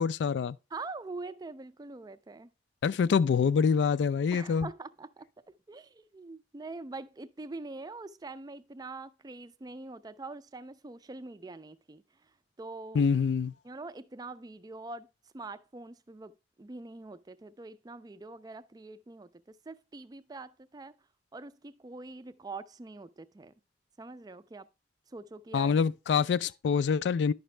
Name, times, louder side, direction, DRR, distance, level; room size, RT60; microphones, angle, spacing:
voice 1, 0.0-0.6 2.8-4.7 12.9-13.5 25.5-27.3, left 6 dB, 80° left, 0.3 m, -26 dB
voice 2, 0.7-2.5 4.3-5.3 5.7-12.0 12.6-13.1 13.6-15.1 15.3-20.9 21.3-23.5 24.0-24.7 25.1-25.8, right 3 dB, 20° right, 0.4 m, -44 dB
10.0 x 6.0 x 3.2 m
head